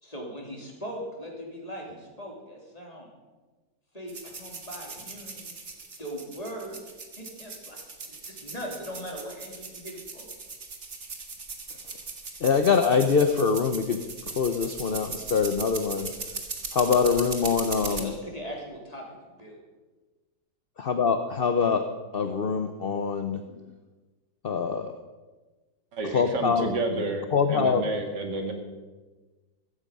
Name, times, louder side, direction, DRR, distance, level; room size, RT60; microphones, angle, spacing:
voice 1, 0.0-3.1 3.9-5.5 6.0-6.9 7.2-7.8 8.1-10.3 17.8-19.6, equal, 20° left, -1 dB, 3.5 m, -39 dB
sound 1, 4.1-18.0, right 4 dB, 40° right, 1.9 m, -39 dB
voice 2, 12.4-14.0 14.4-16.1 16.7-18.1 20.8-21.9 22.1-23.4 24.4-25.0 26.0-26.7 27.3-27.8, left 5 dB, 50° left, 7 dB, 0.6 m, -24 dB
voice 3, 25.9-28.5, right 2 dB, 65° right, 4 dB, 2.5 m, -30 dB
15.0 x 15.0 x 5.4 m, 1.2 s
omnidirectional pair, 2.0 m